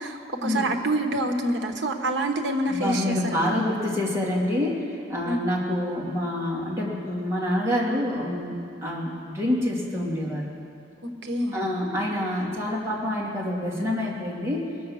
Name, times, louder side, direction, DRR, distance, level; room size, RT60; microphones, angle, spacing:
voice 1, 0.0-3.6 5.2-5.4 11.2-11.6, right 1 dB, 70° right, 4 dB, 1.2 m, -27 dB
voice 2, 2.7-10.4 11.5-14.6, left 1 dB, 15° right, -6 dB, 2.6 m, -27 dB
20.5 x 7.2 x 6.3 m, 2.6 s
head